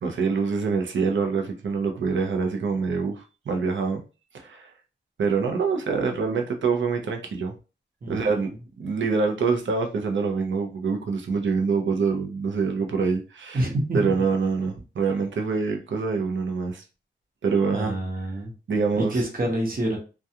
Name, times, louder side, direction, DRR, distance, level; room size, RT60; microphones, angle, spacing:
voice 1, 0.0-4.0 4.3-4.7 5.2-7.5 8.1-8.5 8.8-13.7 13.9-16.8 17.4-17.9 18.7-19.2, right 5 dB, 75° right, 3 dB, 0.6 m, -25 dB
voice 2, 8.0-8.5 13.5-14.1 17.7-18.5 19.0-20.0, right 1 dB, 45° right, 0 dB, 0.9 m, -27 dB
2.3 x 2.2 x 2.8 m, 0.32 s
wide cardioid pair, 105°, 20 cm